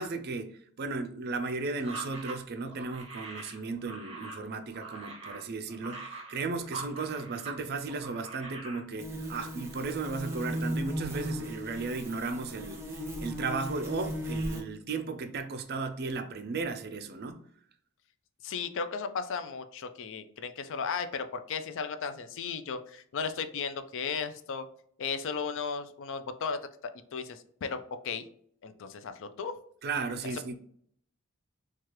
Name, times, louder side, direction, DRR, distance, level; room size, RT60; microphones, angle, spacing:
voice 1, 0.0-12.9 13.2-17.4 29.8-30.6, right 3 dB, 45° right, 0.4 m, -35 dB
sound 1, 1.8-7.6 7.9-8.8, right 3 dB, 25° right, 1.2 m, -43 dB
sound 2, 9.0-14.6, equal, 10° right, 0.7 m, -36 dB
voice 2, 18.4-24.7 25.0-26.6 27.1-28.2 28.6-29.6, left 5 dB, 60° left, 0.4 m, -35 dB
4.6 x 2.4 x 2.9 m
head